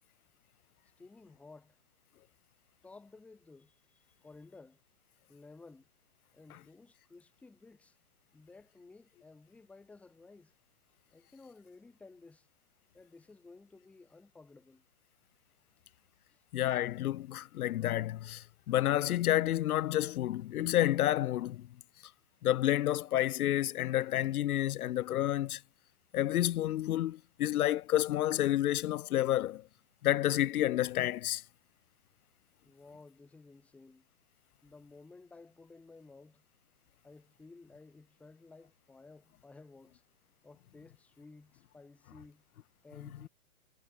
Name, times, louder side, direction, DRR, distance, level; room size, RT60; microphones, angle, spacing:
voice 1, 1.0-1.8 2.8-4.8 5.3-5.9 6.3-8.0 8.3-10.5 11.1-12.5 12.9-14.8 16.3-16.4 32.6-34.0 34.6-36.4 37.0-40.0 40.4-42.4 42.8-43.3, left 3 dB, 5° left, 0.8 m, -55 dB
voice 2, 16.5-21.7 22.4-25.6 26.1-29.6 30.0-31.4, left 13 dB, 80° left, 0.5 m, -30 dB
hypercardioid pair, 135°, 44 cm